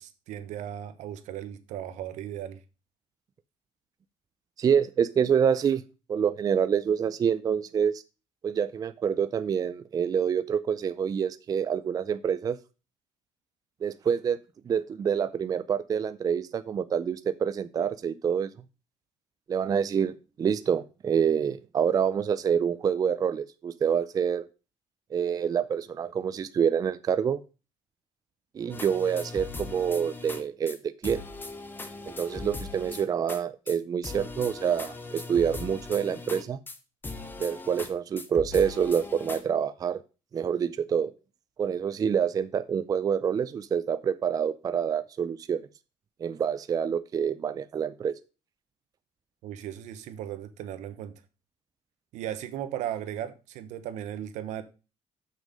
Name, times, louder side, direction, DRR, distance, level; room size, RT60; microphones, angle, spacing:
voice 1, 0.0-2.6 49.4-51.2 52.1-54.6, right 11 dB, 85° right, 1.1 m, -36 dB
voice 2, 4.6-5.8 6.1-7.9 8.4-12.6 13.8-14.4 14.7-18.5 19.5-24.5 25.1-27.4 28.5-30.8 31.0-31.2 32.0-36.6 37.4-40.0 40.3-41.1 41.6-45.6 46.2-48.1, right 7 dB, 30° right, 0.4 m, -27 dB
sound 1, 28.7-30.4 30.7-30.8 31.0-33.4 33.7-33.8 34.0-36.8 37.0-37.9 38.2-39.4, left 3 dB, 15° left, 1.2 m, -39 dB
7.4 x 6.3 x 5.1 m
cardioid pair, 135°, 12 cm